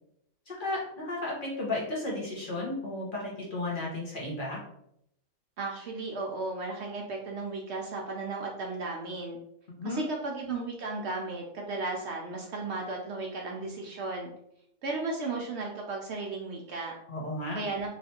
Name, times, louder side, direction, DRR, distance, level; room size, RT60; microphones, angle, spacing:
voice 1, 0.5-4.6 9.8-10.0 17.1-17.6, left 2 dB, 45° left, -4 dB, 1.0 m, -34 dB
voice 2, 5.6-9.4 9.8-14.3 14.8-16.9 17.5-17.9, right 3 dB, 65° right, 0 dB, 0.7 m, -35 dB
3.2 x 3.0 x 2.8 m, 0.75 s
omnidirectional pair, 1.4 m